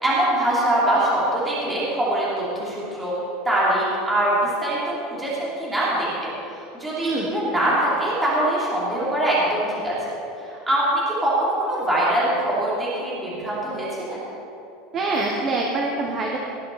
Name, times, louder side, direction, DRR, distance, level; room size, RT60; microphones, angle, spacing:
voice 1, 0.0-3.2 3.4-10.1 10.4-14.2, right 1 dB, 10° right, -8 dB, 3.1 m, -23 dB
voice 2, 14.9-16.4, right 2 dB, 25° right, 0 dB, 1.2 m, -24 dB
18.5 x 10.5 x 4.2 m, 2.8 s
supercardioid pair, 175°, 0 cm